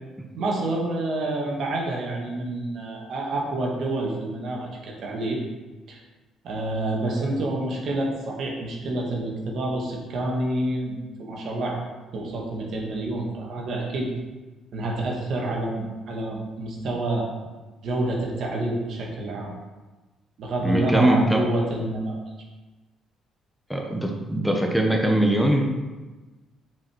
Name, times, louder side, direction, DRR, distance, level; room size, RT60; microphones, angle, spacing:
voice 1, 0.4-5.4 5.9-6.0 6.4-11.9 12.1-14.1 14.7-17.3 17.8-19.5 20.4-22.2, right 2 dB, 65° right, -1 dB, 1.9 m, -28 dB
voice 2, 20.6-21.4 23.7-25.7, right 1 dB, ahead, 1 dB, 1.1 m, -21 dB
7.3 x 5.3 x 4.6 m, 1.2 s
cardioid pair, 85°, 0 cm